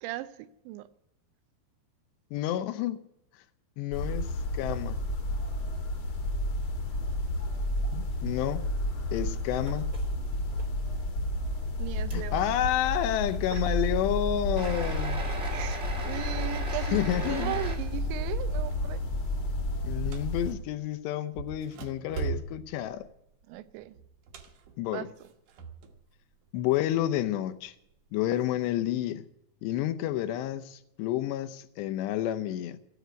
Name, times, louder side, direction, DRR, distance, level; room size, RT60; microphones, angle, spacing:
voice 1, 0.0-0.9 11.8-12.5 13.5-13.6 15.5-17.0 17.3-19.0 23.5-24.0 24.9-25.1, right 15 dB, 90° right, 3.1 m, -37 dB
voice 2, 2.3-3.0 3.8-4.3 4.5-5.0 7.9-8.6 9.1-9.9 12.1-15.2 16.9-17.6 19.8-23.1 24.8-25.1 26.5-27.7 28.1-29.3 29.6-32.8, left 12 dB, 80° left, 2.9 m, -30 dB
sound 1, 3.9-20.5, left 1 dB, 55° left, 1.5 m, -31 dB
sound 2, 9.7-10.1 10.5-10.6 11.3-11.4 12.1-12.2 14.6-17.8, right 2 dB, 40° right, 0.9 m, -38 dB
sound 3, 17.2-17.8 18.2-18.6 19.0-20.8 21.3-26.0 26.3-27.3 27.9-28.7, right 6 dB, 60° right, 2.3 m, -41 dB
13.5 x 10.5 x 9.2 m
omnidirectional pair, 5.1 m